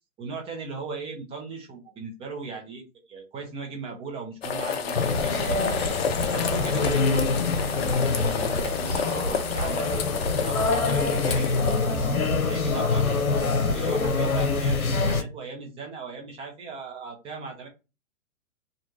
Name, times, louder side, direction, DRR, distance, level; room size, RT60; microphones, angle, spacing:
voice 1, 0.2-2.8 3.1-5.9 6.3-10.1 10.4-13.1 13.6-17.7, right 4 dB, 15° right, 2 dB, 0.8 m, -38 dB
sound 1, 4.4-12.1, left 6 dB, 45° left, 0.6 m, -30 dB
sound 2, 4.9-15.2, left 3 dB, 80° left, 0.9 m, -25 dB
3.2 x 2.5 x 3.7 m, 0.28 s
figure-of-eight pair, 120°, 42 cm